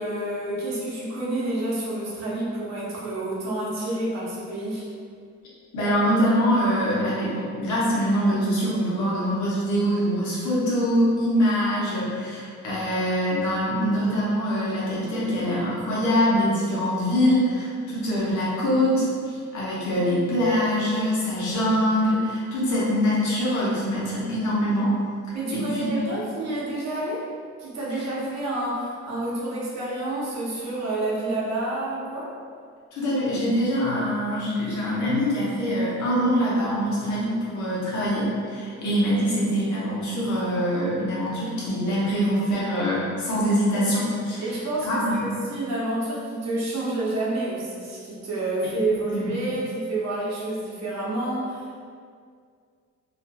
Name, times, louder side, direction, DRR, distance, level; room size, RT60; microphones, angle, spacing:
voice 1, 0.0-4.8 25.3-27.3 27.6-32.3 44.4-51.9, right 2 dB, 60° right, -6 dB, 0.8 m, -29 dB
voice 2, 5.7-25.0 25.5-26.1 32.9-44.5 44.8-45.3 48.6-49.3, equal, 70° left, -7 dB, 0.9 m, -24 dB
2.5 x 2.4 x 2.2 m, 2.1 s
cardioid pair, 90°, 30 cm